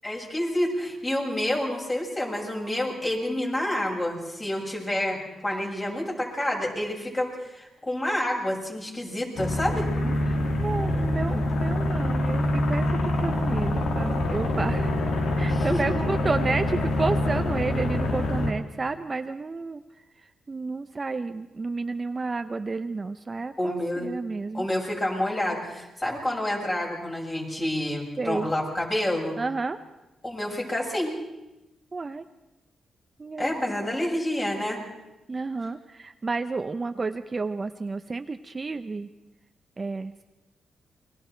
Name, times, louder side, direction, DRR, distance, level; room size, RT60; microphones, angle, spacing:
voice 1, 0.0-9.9 15.5-15.9 23.6-24.1 24.5-29.4 30.2-31.1 33.4-34.8, left 1 dB, 25° left, -1 dB, 6.9 m, -28 dB
sound 1, 9.4-18.5, left 1 dB, 80° left, 2.6 m, -25 dB
voice 2, 10.0-14.9 15.4-19.8 20.5-24.7 28.2-28.5 29.4-29.8 31.9-32.3 33.2-34.0 35.3-39.1 39.8-40.2, right 3 dB, 30° right, 8 dB, 0.7 m, -31 dB
29.5 x 23.0 x 4.6 m, 1.0 s
cardioid pair, 105°, 0 cm